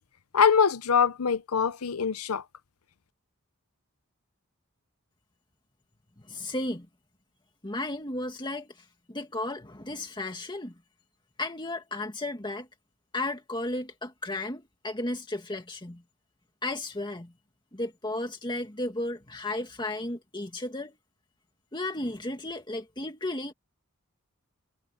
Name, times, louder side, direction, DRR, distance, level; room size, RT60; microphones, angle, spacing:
voice 1, 0.3-2.4, left 6 dB, 85° left, 0.8 m, -23 dB
voice 2, 6.3-6.9 7.6-10.8 11.4-12.7 13.1-16.0 16.6-17.3 17.7-21.0 21.7-23.5, left 2 dB, 20° left, 2.0 m, -34 dB
head